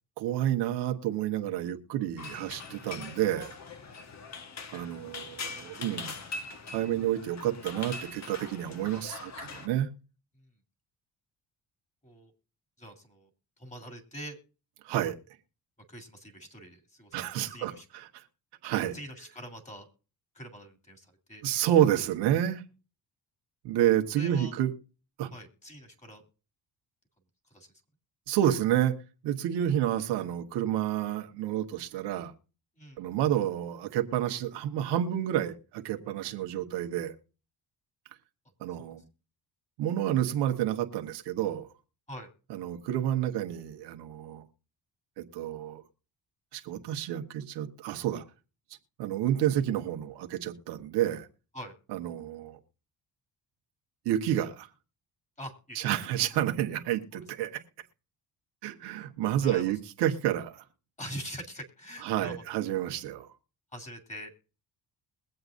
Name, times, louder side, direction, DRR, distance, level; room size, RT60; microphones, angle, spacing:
voice 1, 0.2-3.5 4.7-6.2 6.7-9.9 14.8-15.2 17.1-18.2 18.6-18.9 21.4-22.6 23.6-24.7 25.2-25.3 28.3-28.9 29.2-32.3 33.0-37.1 38.6-39.0 39.8-41.7 42.5-44.4 45.2-45.8 46.5-48.2 49.0-51.3 51.9-52.6 54.0-54.7 55.7-57.6 58.6-60.6 62.0-63.3, right 11 dB, 90° right, 1.4 m, -29 dB
sound 1, 2.2-9.7, left 4 dB, 40° left, 1.4 m, -42 dB
voice 2, 5.5-5.8 10.4-10.5 12.0-12.3 12.8-13.3 13.6-14.4 15.9-17.8 18.9-19.9 20.3-21.4 24.1-24.6 25.3-26.2 27.5-27.7 32.8-33.0 38.8-38.9 42.1-42.3 51.5-51.7 55.4-56.0 57.1-57.2 59.4-59.7 61.0-62.4 63.7-64.3, equal, 15° left, 3.1 m, -44 dB
22.0 x 7.9 x 2.6 m
cardioid pair, 90°, 40 cm